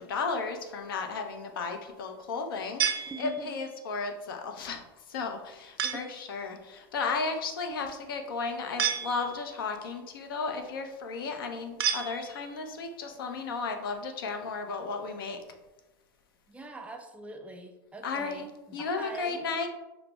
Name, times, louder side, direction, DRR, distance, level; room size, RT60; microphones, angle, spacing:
voice 1, 0.0-15.4 18.0-18.4 18.7-19.7, left 4 dB, 80° left, 5 dB, 0.5 m, -34 dB
sound 1, 2.8-3.7 5.8-6.3 8.8-9.6 11.8-12.7, right 8 dB, 85° right, 0.4 m, -32 dB
voice 2, 3.1-3.5 5.8-6.0 16.5-19.4, right 3 dB, 10° right, 4 dB, 0.3 m, -43 dB
5.6 x 2.0 x 2.2 m, 1.0 s
hypercardioid pair, 110°, 12 cm